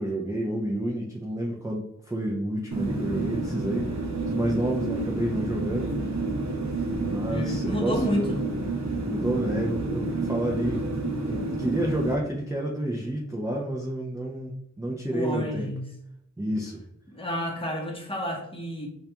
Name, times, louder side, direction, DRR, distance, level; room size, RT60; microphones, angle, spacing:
voice 1, 0.0-3.9 4.3-5.9 7.0-8.4 9.0-10.8 11.3-15.7 16.4-16.8, right 1 dB, 10° right, -2 dB, 0.4 m, -30 dB
sound 1, 2.7-12.2, right 2 dB, 65° right, 0.6 m, -29 dB
voice 2, 7.3-8.4 15.1-15.8 17.1-18.9, equal, 15° left, -1 dB, 0.7 m, -30 dB
2.2 x 2.2 x 2.7 m, 0.78 s
wide cardioid pair, 40°, 31 cm